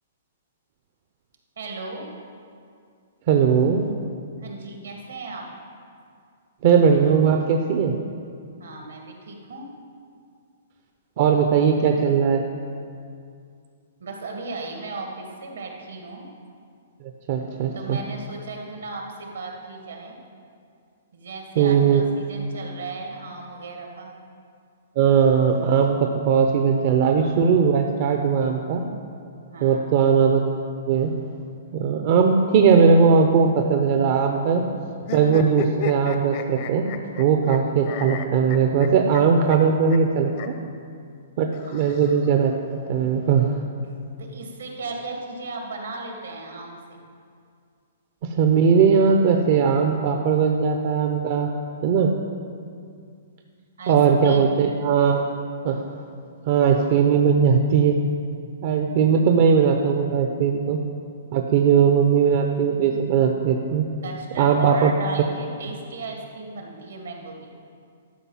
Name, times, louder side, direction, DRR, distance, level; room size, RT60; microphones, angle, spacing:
voice 1, 1.6-2.1 4.4-5.5 8.6-9.7 14.0-16.3 17.7-20.2 21.1-24.1 29.5-29.8 44.2-47.0 53.8-54.0 54.2-54.6 64.0-67.5, right 3 dB, 80° right, 1 dB, 2.1 m, -36 dB
voice 2, 3.3-3.9 6.6-7.9 11.2-12.4 17.3-18.0 21.6-22.0 25.0-28.8 29.6-30.4 30.9-31.1 31.7-34.7 35.1-36.9 37.2-40.5 41.4-43.6 48.2-51.5 51.8-52.1 53.9-55.2 55.6-55.8 56.5-58.0 58.6-60.8 61.3-63.9 64.4-64.9, right 6 dB, 50° right, 3 dB, 0.8 m, -19 dB
sound 1, 35.0-37.6 37.9-39.2 39.5-39.6 39.9-40.0 40.3-40.5 41.5-42.5, left 7 dB, 50° left, 0.9 m, -34 dB
12.5 x 5.4 x 7.4 m, 2.3 s
hypercardioid pair, 125°, 0 cm